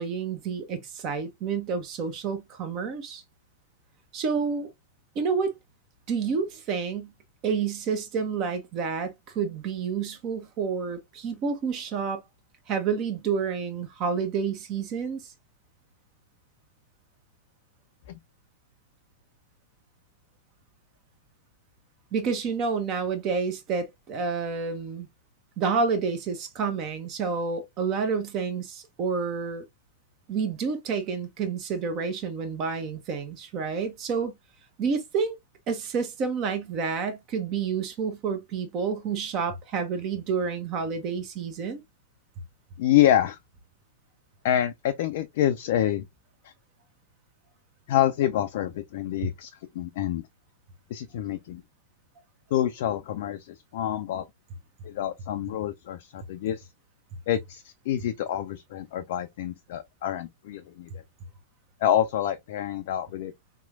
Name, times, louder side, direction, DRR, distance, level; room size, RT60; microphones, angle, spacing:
voice 1, 0.0-3.2 4.1-4.7 5.1-5.6 6.1-7.1 7.4-12.2 12.7-15.2 22.1-25.1 25.6-29.6 30.3-34.3 34.8-35.4 35.7-41.8, right 5 dB, 35° right, 0.9 m, -29 dB
voice 2, 42.8-43.4 44.4-46.0 46.4-46.5 47.9-49.5 49.7-50.2 50.9-51.6 52.5-54.3 54.8-56.7 57.3-61.0 61.8-63.3, left 11 dB, 55° left, 0.4 m, -27 dB
3.6 x 3.0 x 2.4 m
figure-of-eight pair, 95°, 0 cm